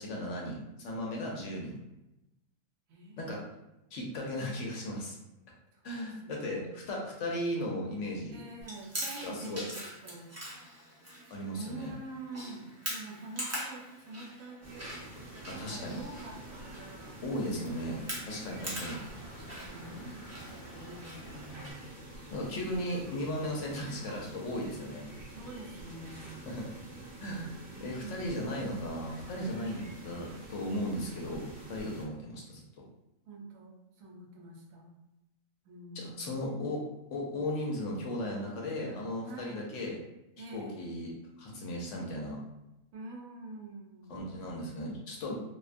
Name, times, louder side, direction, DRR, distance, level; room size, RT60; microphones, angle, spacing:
voice 1, 0.0-1.8 3.2-3.4 3.9-5.2 5.8-8.4 9.2-9.7 11.3-11.9 15.5-16.0 17.2-18.0 18.3-19.0 22.3-25.0 26.5-26.7 27.2-27.5 27.8-32.6 35.9-36.8 37.1-40.0 40.5-41.1 41.4-42.4 44.1-45.4, left 1 dB, 70° left, -2 dB, 0.8 m, -36 dB
voice 2, 2.9-3.3 5.7-6.7 8.3-10.3 11.6-14.9 15.4-17.2 18.5-18.7 19.3-21.8 25.3-26.6 27.8-28.1 29.8-30.4 33.3-34.9 35.6-36.6 39.3-39.8 40.4-40.9 42.9-44.2, right 2 dB, 80° right, 0 dB, 1.0 m, -47 dB
Chewing mastication, 8.6-21.7, equal, 25° right, 0.4 m, -43 dB
sound 1, 14.6-32.0, right 2 dB, 45° right, 0.8 m, -47 dB
2.4 x 2.2 x 2.5 m, 0.94 s
omnidirectional pair, 1.4 m